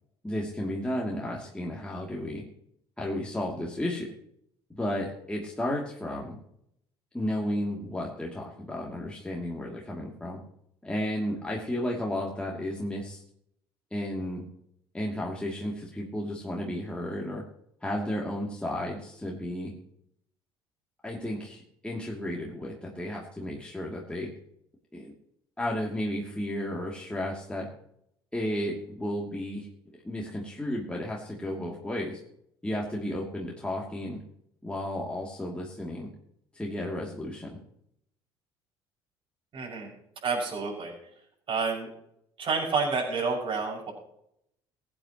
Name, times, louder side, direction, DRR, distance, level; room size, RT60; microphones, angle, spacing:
voice 1, 0.2-2.4 3.0-4.1 4.7-6.4 7.1-10.4 10.8-13.2 13.9-14.4 14.9-17.4 17.8-19.7 21.0-24.3 24.9-25.1 25.6-27.7 28.3-29.7 30.0-32.2 32.6-34.2 34.6-36.1 36.5-37.6, left 1 dB, 10° left, -3 dB, 2.8 m, -33 dB
voice 2, 39.5-39.9 40.2-40.9 41.5-41.9 42.4-43.9, right 4 dB, 40° right, -1 dB, 6.4 m, -29 dB
22.0 x 9.0 x 3.1 m, 0.74 s
figure-of-eight pair, 55°, 13 cm